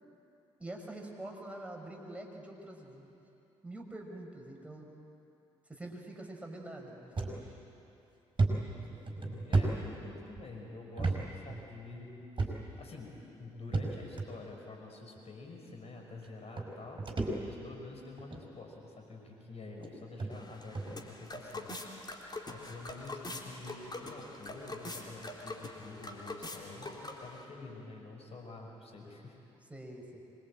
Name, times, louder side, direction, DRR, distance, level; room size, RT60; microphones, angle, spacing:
voice 1, 0.6-3.2 3.6-4.9 5.7-7.4 29.7-30.2, right 1 dB, 10° right, 0 dB, 5.6 m, -45 dB
sound 1, 7.2-7.4 7.8-7.9 8.4-10.4 11.0-11.2 11.5-11.6 12.4-12.8 13.7-14.3 15.2-15.3 16.2-16.3 16.6-17.8 18.2-18.5 19.2-19.3 19.8-19.9 20.2-20.3 20.7-20.9, right 3 dB, 30° right, 5.8 m, -32 dB
voice 2, 9.2-17.1 17.5-21.9 22.5-29.4, left 3 dB, 45° left, 1 dB, 5.9 m, -48 dB
sound 2, 20.3-27.4, left 2 dB, 30° left, 3.8 m, -44 dB
26.0 x 22.5 x 8.9 m, 2.8 s
figure-of-eight pair, 45°, 15 cm